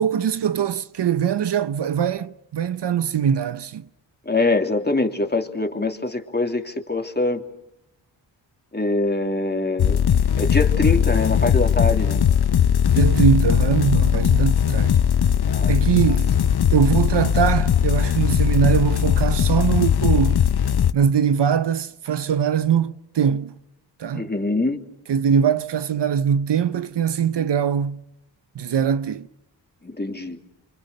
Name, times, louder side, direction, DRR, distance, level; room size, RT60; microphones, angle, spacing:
voice 1, 0.0-3.9 12.9-15.0 15.7-16.3 16.7-20.5 20.9-23.5 24.0-24.3 25.1-28.0 28.5-29.3, right 7 dB, 65° right, 0.9 m, -22 dB
voice 2, 4.2-7.4 8.7-10.0 10.4-12.2 15.4-16.2 24.1-24.8 29.8-30.4, left 2 dB, 20° left, 3.2 m, -24 dB
sound 1, 9.8-20.9, left 9 dB, 55° left, 0.9 m, -19 dB
29.0 x 25.5 x 6.8 m
cardioid pair, 45°, 45 cm